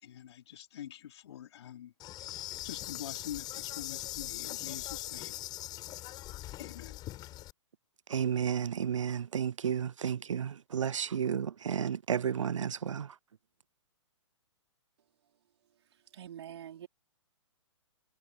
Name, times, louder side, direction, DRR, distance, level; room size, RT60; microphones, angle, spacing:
voice 1, 0.0-1.9 2.6-5.3 6.6-7.0, left 11 dB, 60° left, 4.1 m, -45 dB
Insect, 2.0-7.5, left 15 dB, 25° left, 7.4 m, -41 dB
voice 2, 8.1-13.1, right 8 dB, 80° right, 0.6 m, -32 dB
voice 3, 15.9-16.9, right 10 dB, 60° right, 4.7 m, -46 dB
hypercardioid pair, 130°, 16 cm